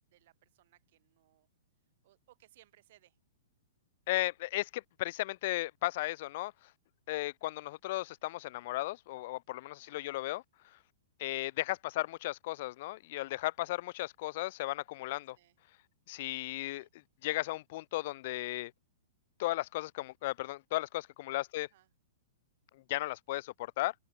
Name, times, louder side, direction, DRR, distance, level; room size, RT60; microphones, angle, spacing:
voice 1, 0.1-1.5 2.0-3.2 9.8-10.2 11.2-11.6 15.4-15.5 16.4-16.9 21.5-21.9, right 15 dB, 55° right, 4.6 m, -66 dB
voice 2, 4.1-6.5 7.1-10.4 11.2-15.4 16.1-16.9 17.2-18.7 19.4-21.7 22.7-23.9, left 18 dB, 55° left, 0.4 m, -35 dB
open air
hypercardioid pair, 125°, 0 cm